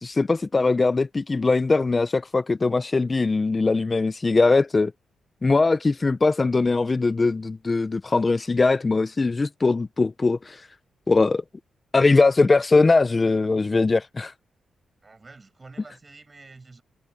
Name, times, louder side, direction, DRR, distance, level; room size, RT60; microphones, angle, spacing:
voice 1, 0.0-4.9 5.4-10.7 11.1-11.4 11.9-14.3, left 3 dB, 30° left, 0.5 m, -21 dB
voice 2, 15.0-16.8, right 3 dB, 30° right, 6.6 m, -48 dB
cardioid pair, 100°, 0 cm